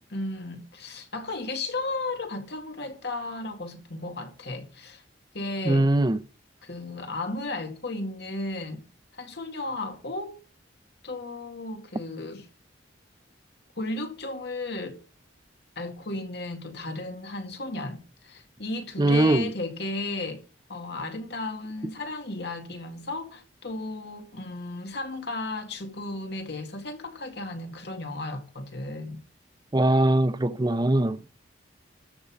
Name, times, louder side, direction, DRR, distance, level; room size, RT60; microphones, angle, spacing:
voice 1, 0.1-5.0 5.3-5.9 6.6-8.8 9.1-10.4 11.0-12.5 13.8-15.0 15.8-20.4 20.7-29.2, left 2 dB, 60° left, 2.1 m, -34 dB
voice 2, 5.7-6.2 19.0-19.5 29.7-31.2, right 1 dB, 20° right, 0.5 m, -21 dB
13.5 x 5.5 x 7.3 m
head